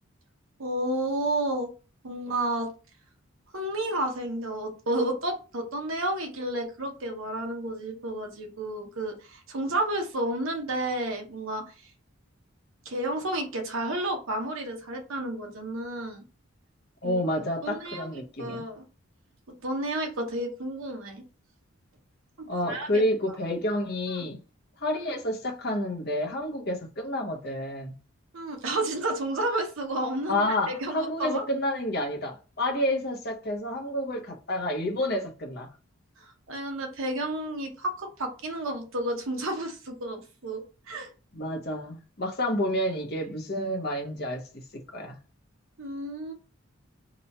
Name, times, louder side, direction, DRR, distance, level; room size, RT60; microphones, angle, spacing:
voice 1, 0.6-1.7 2.0-2.7 3.5-11.7 12.8-16.2 17.0-17.2 17.6-18.1 18.4-18.8 19.6-21.2 22.4-22.9 24.1-24.3 28.3-31.4 36.2-40.6 40.9-41.1 45.8-46.3, right 1 dB, 75° right, 0.9 m, -31 dB
voice 2, 17.0-18.6 22.5-24.4 24.8-27.9 30.3-35.7 41.3-44.6 44.9-45.2, left 1 dB, 45° left, 0.8 m, -29 dB
3.0 x 2.3 x 4.1 m
head